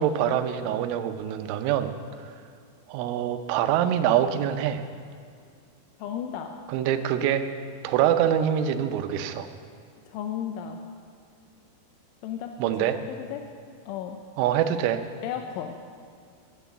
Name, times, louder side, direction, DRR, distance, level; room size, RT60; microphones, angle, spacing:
voice 1, 0.0-1.9 2.9-4.8 6.7-7.5 7.8-9.5 12.6-13.0 14.4-15.0, right 10 dB, 85° right, 9 dB, 3.2 m, -24 dB
voice 2, 6.0-6.5 10.1-10.8 12.2-13.5 13.9-14.2 15.2-15.8, left 9 dB, 85° left, 4 dB, 3.0 m, -34 dB
10.0 x 9.1 x 8.2 m, 2.2 s
omnidirectional pair, 5.5 m